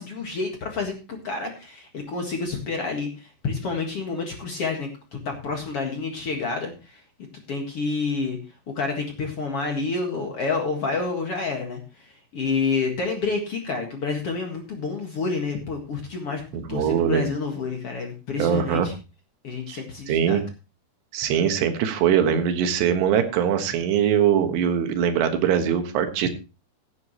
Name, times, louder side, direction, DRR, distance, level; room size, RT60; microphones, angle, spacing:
voice 1, 0.0-7.0 7.5-8.4 8.7-16.4 16.7-18.9 19.4-20.4, left 4 dB, 45° left, 2 dB, 2.1 m, -29 dB
voice 2, 16.5-17.3 18.4-18.9 19.7-19.8 20.1-20.4 21.1-26.3, right 8 dB, 85° right, 7 dB, 3.5 m, -22 dB
16.0 x 9.5 x 3.1 m, 0.31 s
omnidirectional pair, 4.7 m